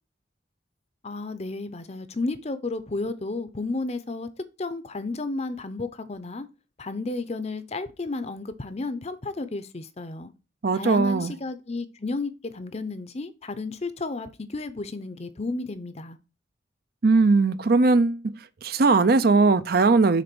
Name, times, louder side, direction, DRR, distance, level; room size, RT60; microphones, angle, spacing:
voice 1, 1.0-4.3 4.6-6.5 6.8-10.3 10.7-16.2, left 3 dB, 35° left, 0.7 m, -32 dB
voice 2, 10.6-11.3 17.0-18.2 18.6-20.2, right 3 dB, 55° right, 0.5 m, -19 dB
6.6 x 3.9 x 6.1 m
head